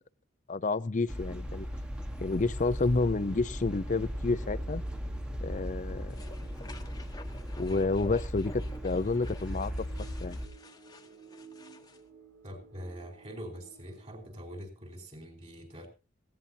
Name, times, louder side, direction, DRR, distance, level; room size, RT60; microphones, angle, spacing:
voice 1, 0.5-1.7 2.2-4.8 5.4-6.2 7.6-9.7 10.2-10.4, left 3 dB, 40° left, 16 dB, 0.6 m, -30 dB
sound 1, 0.7-14.6, right 4 dB, 90° right, 4.4 m, -56 dB
sound 2, 1.1-10.5, equal, 5° right, 1.3 m, -37 dB
sound 3, 6.1-12.0, left 2 dB, 20° left, 1.1 m, -51 dB
voice 2, 12.4-15.9, equal, 35° right, 4 dB, 4.7 m, -44 dB
18.0 x 16.5 x 2.8 m, 0.31 s
head